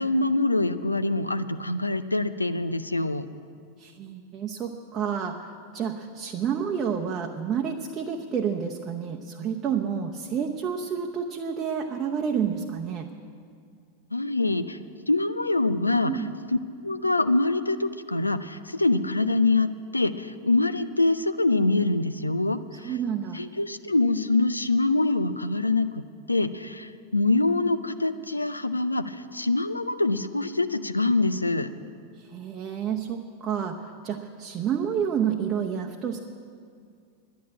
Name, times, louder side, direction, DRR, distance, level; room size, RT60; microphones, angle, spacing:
voice 1, 0.0-3.3 14.1-14.8 15.1-16.1 16.8-22.9 23.3-31.7, left 2 dB, 85° left, 12 dB, 0.5 m, -25 dB
voice 2, 3.8-13.1 16.0-16.3 22.7-23.4 32.2-33.8 34.0-36.2, right 7 dB, 30° right, 1 dB, 0.8 m, -29 dB
10.5 x 10.5 x 8.9 m, 2.2 s
figure-of-eight pair, 90°, 0 cm